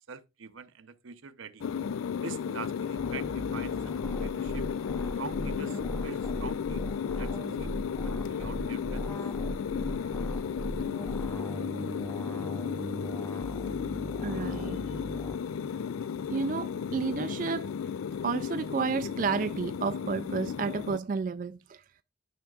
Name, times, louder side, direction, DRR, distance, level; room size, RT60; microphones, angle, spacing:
voice 1, 0.1-1.6 2.2-4.7 5.1-6.9 7.2-9.2, right 5 dB, 80° right, 0.7 m, -44 dB
sound 1, 1.6-21.0, left 7 dB, 90° left, 0.4 m, -34 dB
sound 2, 3.0-15.3, equal, 10° left, 0.6 m, -38 dB
voice 2, 14.2-15.0 16.3-17.7 18.2-21.8, right 5 dB, 40° right, 0.3 m, -31 dB
12.5 x 5.7 x 2.4 m
head